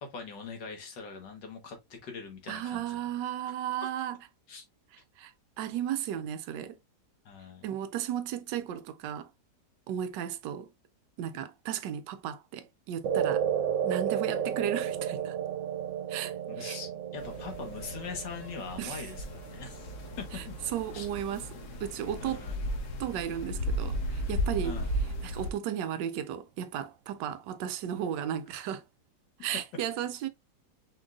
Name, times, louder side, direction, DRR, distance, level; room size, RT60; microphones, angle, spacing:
voice 1, 0.0-3.0 4.5-4.6 7.3-7.7 16.5-20.5 20.9-21.1 22.2-22.5 24.6-24.9 28.5-28.7, left 5 dB, 90° left, 1.9 m, -42 dB
voice 2, 2.5-4.2 5.2-5.3 5.6-6.8 7.6-9.3 9.9-10.7 11.2-13.5 13.8-15.4 16.1-16.8 18.8-19.0 20.3-20.4 20.7-21.5 21.8-22.5 23.0-24.8 25.2-28.8 29.4-30.3, right 10 dB, 85° right, 1.3 m, -34 dB
sound 1, 13.0-21.5, right 8 dB, 70° right, 0.8 m, -33 dB
sound 2, 17.2-25.5, equal, 70° left, 1.6 m, -35 dB
5.3 x 3.8 x 2.4 m
omnidirectional pair, 1.9 m